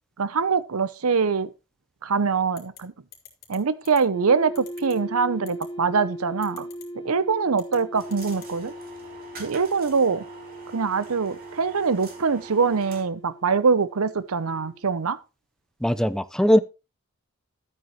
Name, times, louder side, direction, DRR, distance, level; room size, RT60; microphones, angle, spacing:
voice 1, 0.2-1.5 2.0-2.9 3.5-6.7 7.0-8.7 9.4-10.2 10.7-15.2, right 5 dB, 85° right, 0.7 m, -23 dB
sound 1, 2.6-2.8 3.1-3.6 3.8-4.0 4.5-4.9 5.5-5.6 6.4-6.8 7.5-7.8 8.1-8.5, left 10 dB, 45° left, 3.0 m, -45 dB
sound 2, 4.1-14.8, equal, 20° left, 1.0 m, -39 dB
sound 3, 7.9-13.0, right 4 dB, 45° right, 3.2 m, -44 dB
voice 2, 15.8-16.6, equal, 5° left, 0.6 m, -20 dB
12.0 x 9.0 x 3.0 m
head